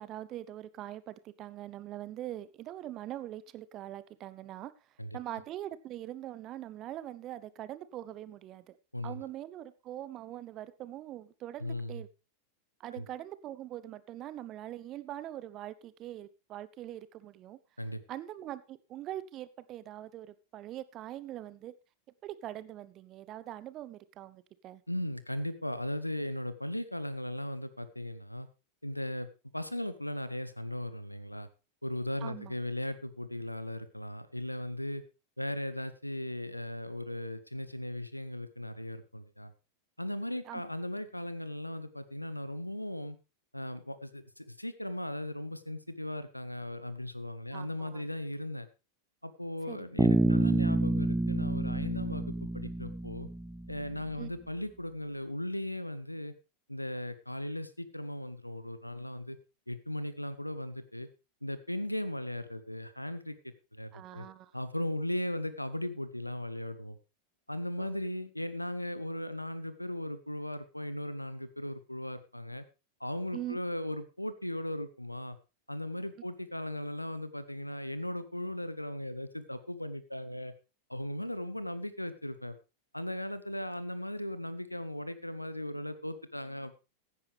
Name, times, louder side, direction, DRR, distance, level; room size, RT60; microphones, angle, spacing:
voice 1, 0.0-4.7 5.1-8.8 9.0-12.1 12.8-17.6 18.1-21.7 22.2-24.8 32.2-32.6 40.4-40.6 47.5-48.1 49.7-49.9 54.1-54.3 63.9-64.5 67.8-68.0 73.3-73.6, right 13 dB, 35° right, 0.9 m, -43 dB
voice 2, 8.9-9.3 11.6-12.0 12.9-13.1 17.8-18.0 24.9-28.5 28.8-31.5 31.8-35.0 35.4-39.5 40.0-43.2 43.5-48.7 49.2-53.3 53.7-56.3 56.7-59.4 59.7-61.1 61.4-64.3 64.5-67.0 67.5-72.6 73.0-75.4 75.7-80.5 80.9-82.6 82.9-86.8, left 1 dB, 90° left, 0.9 m, -37 dB
Bass guitar, 50.0-53.9, right 1 dB, 5° right, 0.5 m, -28 dB
15.5 x 9.6 x 3.4 m
figure-of-eight pair, 90°, 0 cm